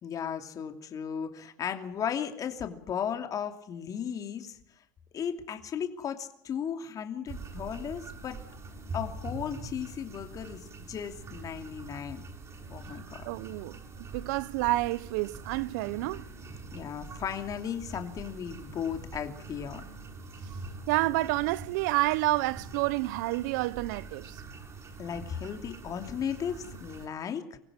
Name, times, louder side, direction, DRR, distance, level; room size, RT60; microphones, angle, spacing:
voice 1, 0.0-4.6 5.1-8.4 8.9-12.2 12.7-13.3 16.7-19.9 25.0-27.6, left 8 dB, 35° left, 2.8 m, -35 dB
sound 1, 7.3-27.1, right 3 dB, 30° right, 6.7 m, -44 dB
voice 2, 13.2-13.8 14.1-16.2 20.9-24.4, right 19 dB, 75° right, 0.8 m, -29 dB
25.0 x 16.0 x 7.4 m
supercardioid pair, 110°, 10 cm